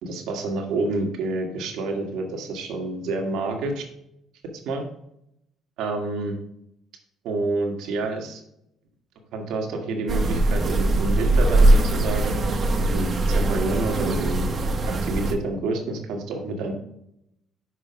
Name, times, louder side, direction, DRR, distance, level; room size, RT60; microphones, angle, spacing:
voice 1, 0.0-3.8 4.7-4.8 5.8-6.4 7.2-8.4 9.3-12.3 12.9-14.5 15.0-16.7, right 2 dB, 75° right, 3 dB, 1.7 m, -28 dB
sound 1, 10.1-15.3, right 2 dB, 40° right, 1.1 m, -21 dB
6.3 x 4.9 x 4.9 m, 0.78 s
cardioid pair, 90°, 0 cm